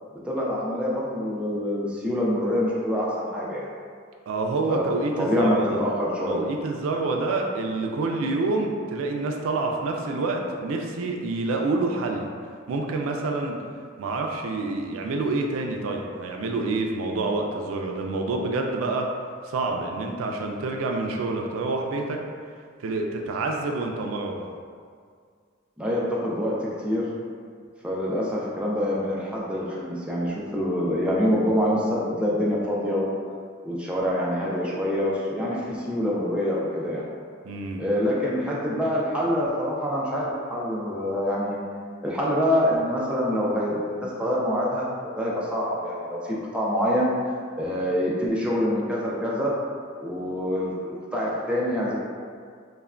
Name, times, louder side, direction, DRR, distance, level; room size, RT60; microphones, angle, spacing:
voice 1, 0.3-3.1 3.3-3.7 4.7-4.8 5.2-6.4 25.8-27.1 27.8-33.1 33.6-37.0 37.8-41.6 42.0-47.1 47.6-49.5 50.0-51.9, equal, 5° right, -6 dB, 0.3 m, -25 dB
voice 2, 4.3-5.8 6.2-12.3 12.7-13.6 14.0-19.1 19.5-22.2 22.8-24.4 37.4-37.8, right 3 dB, 90° right, 2 dB, 0.3 m, -27 dB
3.2 x 2.1 x 2.4 m, 2.1 s
head